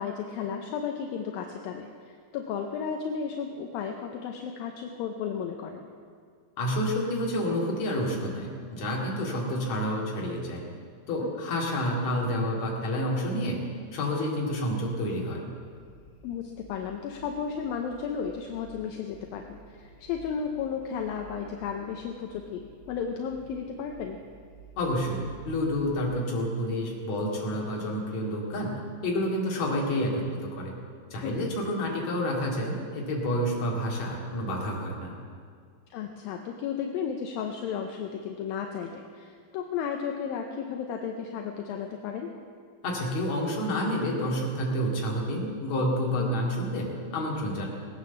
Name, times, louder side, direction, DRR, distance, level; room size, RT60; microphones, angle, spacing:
voice 1, 0.0-5.9 11.2-11.3 16.2-24.2 31.2-31.5 35.9-42.3 46.1-46.4, left 7 dB, 80° left, 3 dB, 2.5 m, -34 dB
voice 2, 6.6-10.6 11.1-13.6 13.9-15.4 24.8-30.3 30.6-30.8 31.1-35.1 42.8-47.7, equal, 50° left, -2 dB, 3.5 m, -29 dB
sound 1, 15.6-26.2, right 1 dB, 35° left, 5.5 m, -52 dB
19.5 x 9.4 x 7.0 m, 2.1 s
omnidirectional pair, 4.2 m